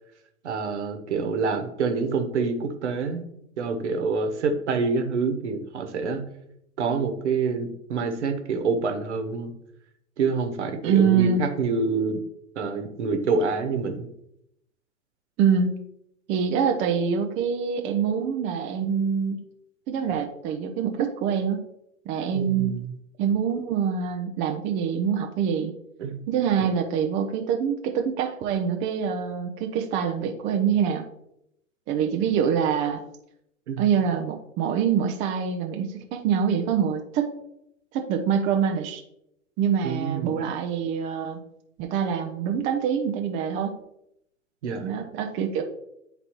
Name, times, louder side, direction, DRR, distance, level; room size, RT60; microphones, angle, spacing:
voice 1, 0.4-3.2 3.6-6.2 6.8-9.5 10.2-12.2 12.5-14.1 22.3-22.9 26.0-26.2 26.6-26.7 33.7-33.8 39.8-40.5 44.6-45.0, right 4 dB, 60° right, 6 dB, 1.1 m, -27 dB
voice 2, 10.8-11.4 15.4-15.8 16.3-19.4 19.9-21.7 22.1-22.8 23.2-25.7 26.3-31.1 31.9-33.0 33.8-37.3 37.9-39.0 39.6-41.4 41.8-43.8 44.8-45.6, right 7 dB, 20° right, 3 dB, 0.4 m, -25 dB
9.6 x 3.9 x 2.9 m, 0.79 s
figure-of-eight pair, 100°, 39 cm